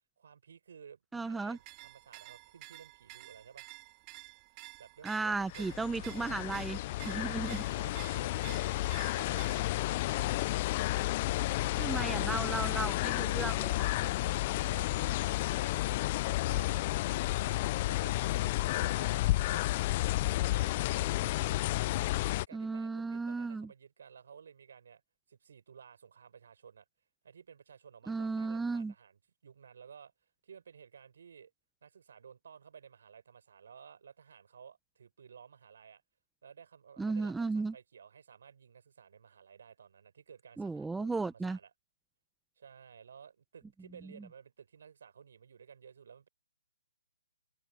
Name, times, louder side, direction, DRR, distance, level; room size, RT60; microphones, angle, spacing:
voice 1, 0.2-3.7 4.8-6.2 7.0-8.7 9.1-10.5 11.6-12.1 13.0-13.4 13.7-20.0 20.5-21.8 22.3-25.0 25.3-26.8 27.2-30.1 30.4-31.5 31.8-36.0 36.4-41.7 42.6-46.3, right 7 dB, 65° right, 6.1 m, -55 dB
voice 2, 1.1-1.6 5.0-7.6 11.8-13.8 22.5-23.7 28.1-28.9 37.0-37.7 40.6-41.6, right 3 dB, 5° right, 1.0 m, -35 dB
sound 1, 1.5-9.9, right 26 dB, 25° right, 2.3 m, -52 dB
sound 2, 5.3-22.5, left 17 dB, 35° left, 0.3 m, -31 dB
hypercardioid pair, 145°, 0 cm